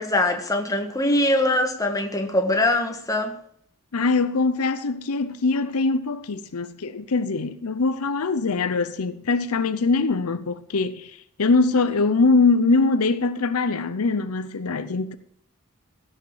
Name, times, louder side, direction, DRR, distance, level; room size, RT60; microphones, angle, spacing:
voice 1, 0.0-3.3, left 1 dB, 15° left, 1.7 m, -22 dB
voice 2, 3.9-15.1, left 3 dB, 75° left, 0.7 m, -22 dB
16.0 x 6.5 x 7.5 m
head